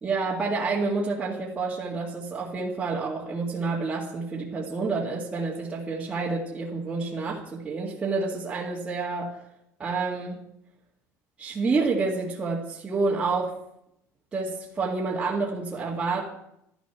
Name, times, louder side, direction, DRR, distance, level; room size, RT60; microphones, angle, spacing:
voice 1, 0.0-9.3 9.8-10.4 11.4-13.5 14.3-16.3, right 3 dB, 15° right, -7 dB, 2.1 m, -28 dB
13.0 x 12.5 x 6.0 m, 0.79 s
cardioid pair, 175°, 6 cm